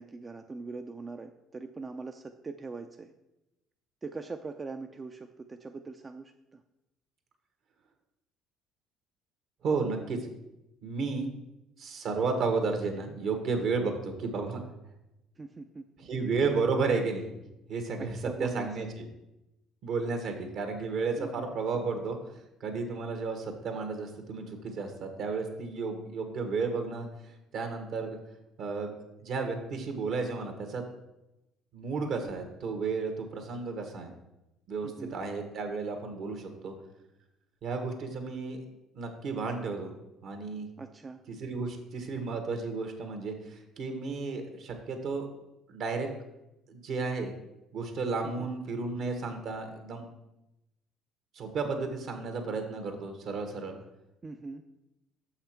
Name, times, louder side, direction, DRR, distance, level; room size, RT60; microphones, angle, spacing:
voice 1, 0.0-3.1 4.0-6.6 11.2-11.3 15.4-15.9 18.0-18.7 20.0-20.2 21.2-21.5 34.8-35.2 40.8-41.2 48.4-48.5 54.2-54.6, right 3 dB, 25° right, 6 dB, 0.4 m, -42 dB
voice 2, 9.6-10.2 10.8-11.3 11.8-14.6 16.0-17.4 17.7-18.9 19.8-22.2 22.6-27.1 27.5-28.2 28.6-28.9 29.2-30.8 31.7-34.1 34.7-36.7 37.6-38.6 38.9-39.9 40.2-40.7 41.3-45.3 45.7-46.1 46.7-47.4 47.7-50.1 51.3-53.7, right 4 dB, 65° right, 5 dB, 1.3 m, -32 dB
6.4 x 5.7 x 4.5 m, 0.93 s
supercardioid pair, 80°, 0 cm